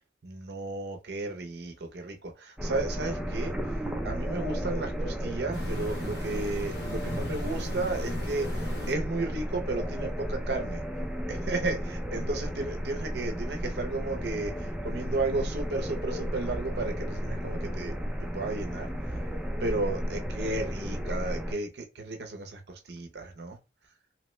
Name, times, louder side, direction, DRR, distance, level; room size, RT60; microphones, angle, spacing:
voice 1, 0.2-3.5 4.0-10.8 11.3-17.9 18.3-19.2 19.6-23.6, right 2 dB, 60° right, 0.6 m, -33 dB
sound 1, 2.6-21.5, equal, 5° right, 0.4 m, -33 dB
sound 2, 5.5-8.9, left 1 dB, 65° left, 1.0 m, -39 dB
2.9 x 2.1 x 3.0 m
head